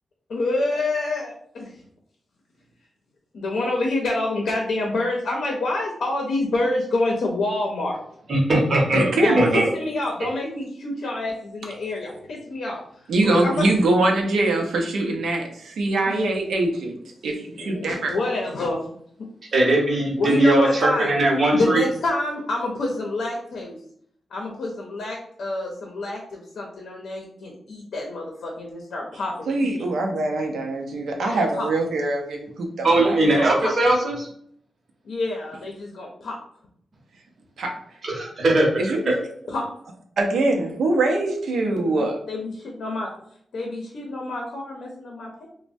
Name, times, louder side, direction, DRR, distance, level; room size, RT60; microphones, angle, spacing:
voice 1, 0.3-1.7 3.3-8.0 9.2-12.8 13.2-13.7 16.1-16.2 17.6-18.8 20.2-21.1 21.5-23.8 24.3-29.9 31.2-31.7 33.0-33.7 35.0-36.4 39.5-39.6 42.3-43.1 43.5-45.5, left 2 dB, 75° left, -1 dB, 0.5 m, -27 dB
voice 2, 8.3-9.1 9.4-9.7 19.5-21.8 32.8-34.3 38.0-38.8, right 2 dB, 55° right, -1 dB, 0.8 m, -19 dB
voice 3, 8.9-9.5 13.1-17.0 17.2-18.2 29.5-33.2 37.6-37.7 38.8-39.0 40.2-42.2, right 2 dB, 90° right, 2 dB, 0.5 m, -23 dB
3.1 x 2.1 x 2.6 m, 0.66 s
wide cardioid pair, 125°, 0 cm